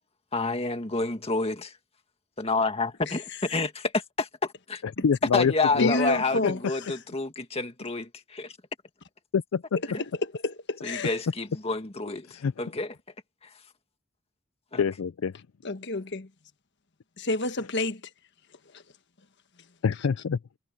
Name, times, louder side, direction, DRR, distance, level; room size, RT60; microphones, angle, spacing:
voice 1, 0.3-1.8 2.4-4.8 5.3-8.5 9.9-10.0 10.8-13.0 13.4-13.5 14.7-14.8, left 3 dB, 30° left, 1.9 m, -29 dB
voice 2, 5.0-5.5 5.8-5.9 6.4-6.5 9.3-9.8 12.3-12.5 14.7-15.3 19.8-20.4, left 6 dB, 85° left, 0.4 m, -25 dB
voice 3, 5.7-7.0 9.8-11.1 15.6-16.3 17.2-18.0 18.7-18.8, left 2 dB, 55° left, 1.5 m, -29 dB
head